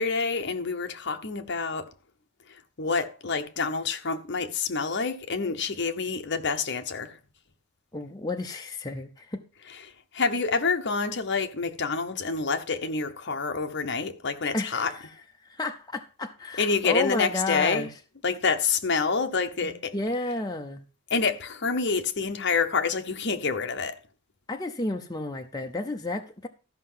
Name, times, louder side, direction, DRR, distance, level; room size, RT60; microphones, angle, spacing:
voice 1, 0.0-1.9 2.8-7.1 10.1-14.9 16.6-17.9 18.2-19.9 21.1-24.0, left 4 dB, 50° left, 0.9 m, -27 dB
voice 2, 7.9-9.4 14.5-18.0 19.6-20.8 24.5-26.5, left 2 dB, 15° left, 0.6 m, -32 dB
13.5 x 5.7 x 5.5 m
head